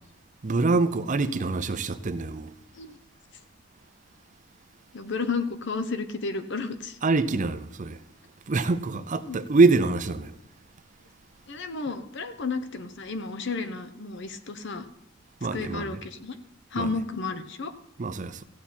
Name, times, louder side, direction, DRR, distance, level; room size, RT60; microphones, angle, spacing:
voice 1, 0.4-2.5 7.0-8.0 8.5-10.3 15.4-16.0 16.8-16.9 18.0-18.4, right 3 dB, 35° right, 0.5 m, -24 dB
voice 2, 4.9-7.0 9.3-9.4 11.5-14.9 15.5-16.4 16.7-17.7, left 4 dB, 55° left, 0.9 m, -32 dB
15.0 x 8.5 x 4.4 m
head